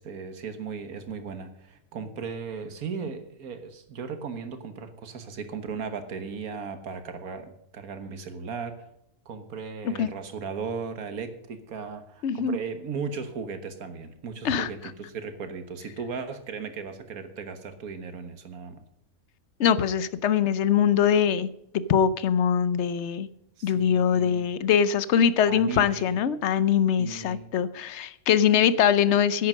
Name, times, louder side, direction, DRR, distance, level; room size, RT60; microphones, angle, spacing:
voice 1, 0.0-8.9 9.3-18.8 23.6-24.5 25.4-26.2 27.0-27.5, right 5 dB, 75° right, 9 dB, 1.7 m, -36 dB
voice 2, 12.2-12.6 14.4-14.7 19.6-21.5 21.7-23.3 23.6-29.5, left 8 dB, 60° left, 15 dB, 0.8 m, -22 dB
10.5 x 8.5 x 6.4 m, 0.83 s
omnidirectional pair, 1.5 m